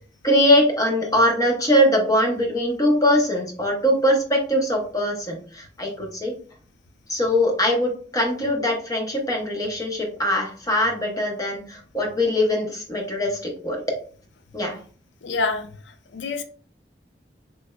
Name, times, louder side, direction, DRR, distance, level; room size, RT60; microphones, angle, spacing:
voice 1, 0.2-6.3 7.1-14.0 14.5-14.8, left 1 dB, 20° left, 0.8 m, -22 dB
voice 2, 15.2-15.7 16.1-16.4, left 3 dB, 90° left, 0.4 m, -25 dB
3.4 x 3.0 x 2.3 m
head